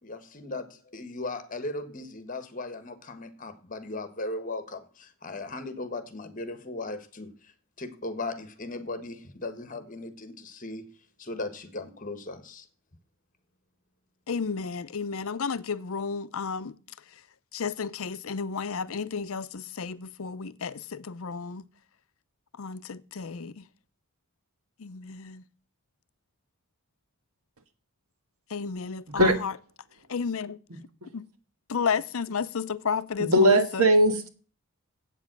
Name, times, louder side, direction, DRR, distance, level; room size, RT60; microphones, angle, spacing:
voice 1, 0.0-10.9 11.2-12.7, left 2 dB, 35° left, 1.4 m, -37 dB
voice 2, 14.3-16.8 17.5-21.7 22.6-23.6 24.8-25.4 28.5-29.5 30.1-30.6 31.1-31.2 31.7-33.9, left 5 dB, 70° left, 0.6 m, -32 dB
voice 3, 33.2-34.3, right 1 dB, 80° right, 1.6 m, -20 dB
8.4 x 7.3 x 7.7 m
head